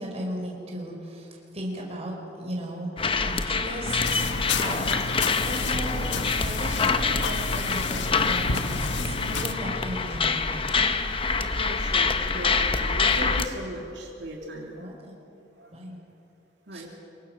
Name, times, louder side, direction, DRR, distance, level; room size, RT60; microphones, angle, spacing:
voice 1, 0.0-2.1 2.4-2.9 3.2-4.0 4.6-10.9 13.0-13.2 14.8-15.2 15.7-16.0 16.7-16.8, right 1 dB, 35° right, -1 dB, 5.0 m, -36 dB
sound 1, 3.0-13.5, left 4 dB, 30° left, 0.9 m, -26 dB
sound 2, 3.9-9.5, left 3 dB, 90° left, 1.5 m, -30 dB
voice 2, 11.6-14.9 15.6-15.7 16.7-16.9, right 1 dB, 75° right, -2 dB, 3.1 m, -37 dB
26.5 x 23.5 x 6.3 m, 2.8 s
head